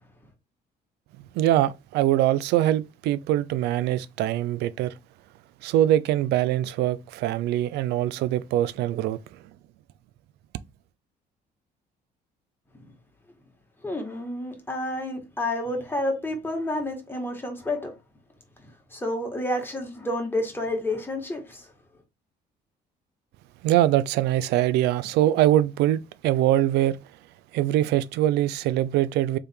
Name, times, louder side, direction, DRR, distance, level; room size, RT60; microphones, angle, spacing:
voice 1, 1.4-4.9 5.6-9.2 23.6-27.0 27.5-29.4, right 13 dB, 85° right, 0.5 m, -23 dB
voice 2, 13.8-17.9 18.9-21.7, left 1 dB, 10° left, 1.7 m, -29 dB
3.4 x 3.3 x 4.5 m
cardioid pair, 110°, 17 cm